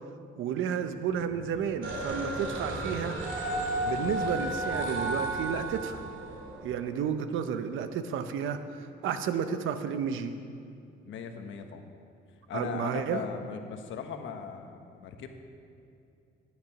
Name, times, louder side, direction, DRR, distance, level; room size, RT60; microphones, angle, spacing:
voice 1, 0.4-3.2 3.8-6.0 6.6-10.4 12.5-13.2, right 7 dB, 85° right, 10 dB, 0.8 m, -32 dB
sound 1, 0.9-6.5, equal, 5° right, 2.1 m, -47 dB
sound 2, 1.8-6.7, right 1 dB, 65° right, 2.6 m, -33 dB
voice 2, 11.0-11.8 12.5-15.3, left 7 dB, 75° left, 6 dB, 1.2 m, -38 dB
12.0 x 9.5 x 6.0 m, 2.6 s
cardioid pair, 90°, 20 cm